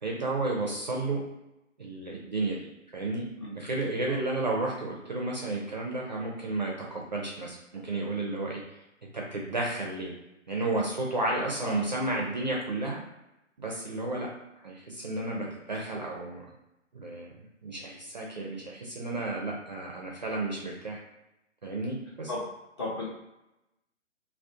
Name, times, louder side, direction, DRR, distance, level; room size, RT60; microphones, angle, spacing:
voice 1, 0.0-1.2 1.8-2.6 2.9-8.6 9.1-10.1 10.5-13.0 13.6-14.3 14.6-16.4 16.9-17.3 17.6-21.0 21.6-22.3, right 2 dB, 40° right, -2 dB, 0.4 m, -32 dB
voice 2, 3.4-3.5 8.4-8.5 11.6-11.9 15.3-15.5 22.3-22.4 22.8-23.0, left 2 dB, 20° left, -6 dB, 0.5 m, -34 dB
2.4 x 2.0 x 2.7 m, 0.92 s
figure-of-eight pair, 135°, 38 cm